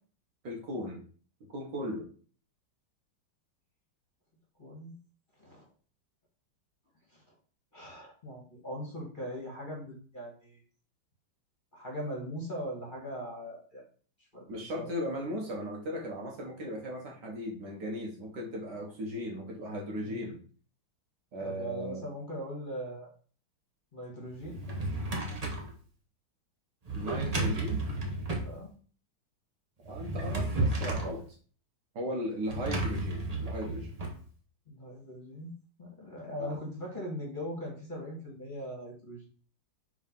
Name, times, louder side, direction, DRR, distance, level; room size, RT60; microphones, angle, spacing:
voice 1, 0.4-1.0 1.5-2.1 14.5-20.4 21.3-22.0 26.9-27.8 29.9-31.2 32.0-33.9 36.4-36.6, equal, 60° right, 0 dB, 1.8 m, -37 dB
voice 2, 4.6-5.0 5.4-5.7 7.1-7.3 7.7-10.6 11.7-13.9 14.3-14.9 20.0-20.4 21.4-23.1 23.9-24.6 28.4-28.7 34.7-39.3, equal, 25° left, -3 dB, 1.7 m, -40 dB
Drawer open or close, 24.4-25.7 26.9-28.5 29.8-31.2 32.5-34.1, right 2 dB, 30° right, 0.7 m, -32 dB
4.8 x 3.8 x 5.3 m, 0.42 s
omnidirectional pair, 2.3 m